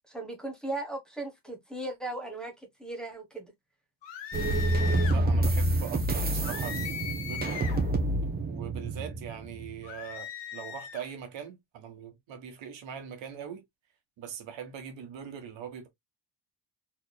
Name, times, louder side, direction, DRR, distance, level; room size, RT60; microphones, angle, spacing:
voice 1, 0.1-3.5, right 2 dB, ahead, 1.2 m, -37 dB
sound 1, 4.0-5.2 6.4-7.9 9.8-11.1, left 8 dB, 75° left, 1.2 m, -39 dB
sound 2, 4.3-9.8, right 1 dB, 20° right, 0.8 m, -28 dB
voice 2, 5.1-7.7 8.4-13.6 14.2-15.9, right 8 dB, 85° right, 1.4 m, -42 dB
4.2 x 3.0 x 2.2 m
cardioid pair, 155°, 43 cm